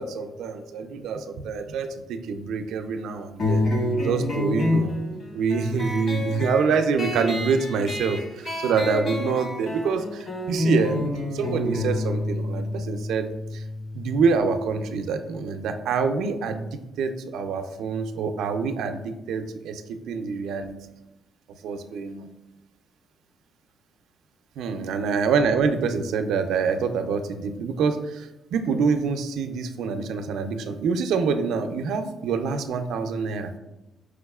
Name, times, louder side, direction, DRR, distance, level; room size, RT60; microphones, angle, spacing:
voice 1, 0.0-3.6 4.0-5.0 5.3-13.6 13.9-20.7 21.6-22.3 24.6-33.5, right 5 dB, 85° right, 7 dB, 0.4 m, -26 dB
sound 1, 3.4-14.5, left 1 dB, 40° left, 1.0 m, -28 dB
4.8 x 4.7 x 2.3 m, 0.95 s
cardioid pair, 105°, 0 cm